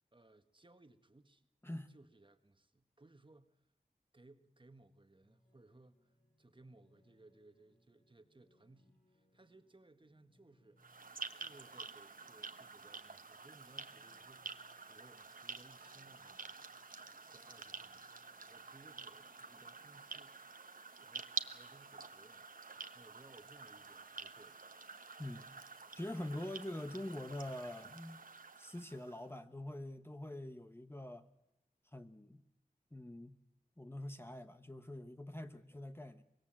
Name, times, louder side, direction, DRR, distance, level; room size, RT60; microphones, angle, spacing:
voice 1, 0.1-1.5 1.9-3.6 4.1-10.8 11.3-16.7 17.3-20.7 21.0-24.6, right 2 dB, 35° right, 9 dB, 1.5 m, -63 dB
sound 1, 5.2-20.0, left 1 dB, 65° left, 6.8 m, -74 dB
sound 2, 10.8-29.3, right 4 dB, 65° right, 1.2 m, -49 dB
voice 2, 25.2-25.5 25.9-28.2 28.6-31.3 31.9-32.4 32.9-33.4 33.8-36.2, left 1 dB, 15° left, 8 dB, 1.1 m, -45 dB
25.0 x 21.5 x 7.6 m, 0.91 s
wide cardioid pair, 65°, 15 cm